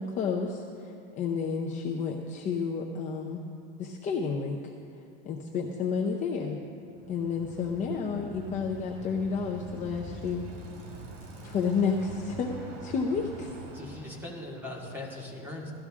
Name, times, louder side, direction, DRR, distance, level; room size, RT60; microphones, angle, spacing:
voice 1, 0.0-3.4 3.8-4.6 5.2-6.6 7.1-10.5 11.4-12.5 12.8-13.5, left 5 dB, 25° left, 0 dB, 0.7 m, -31 dB
Bicycle, 6.9-14.4, right 2 dB, 70° right, 3.3 m, -44 dB
voice 2, 13.7-15.7, left 2 dB, 5° right, -3 dB, 2.2 m, -40 dB
17.5 x 13.5 x 3.7 m, 2.6 s
supercardioid pair, 160°, 30 cm